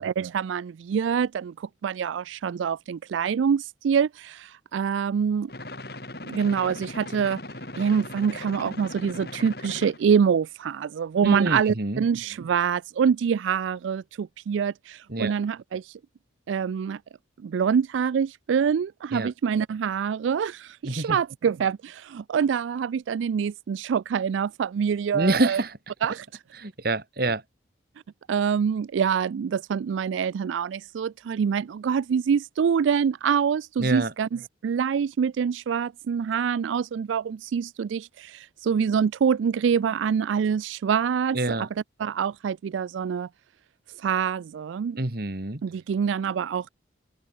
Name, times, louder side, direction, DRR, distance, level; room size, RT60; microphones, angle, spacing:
voice 1, 0.0-5.5 6.2-7.4 7.8-16.0 16.5-17.0 17.4-25.6 26.0-26.3 28.3-41.7 42.0-43.3 44.0-45.0 45.6-46.7, right 7 dB, 85° right, 0.3 m, -25 dB
sound 1, 5.5-10.0, left 2 dB, 55° left, 6.4 m, -39 dB
voice 2, 11.2-12.0 15.1-15.4 19.1-19.3 20.8-21.2 25.1-25.8 26.6-27.4 33.8-34.1 41.3-41.7 45.0-45.6, right 2 dB, 55° right, 1.8 m, -26 dB
open air
head